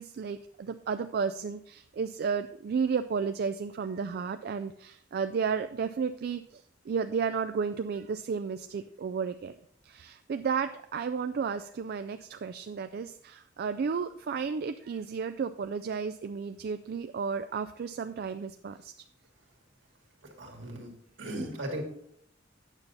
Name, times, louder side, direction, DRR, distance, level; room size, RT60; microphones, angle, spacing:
voice 1, 0.0-9.5 9.8-18.9, right 6 dB, 55° right, 9 dB, 0.3 m, -33 dB
voice 2, 20.2-21.8, right 1 dB, 75° right, 1 dB, 2.0 m, -38 dB
9.1 x 6.7 x 4.1 m, 0.69 s
head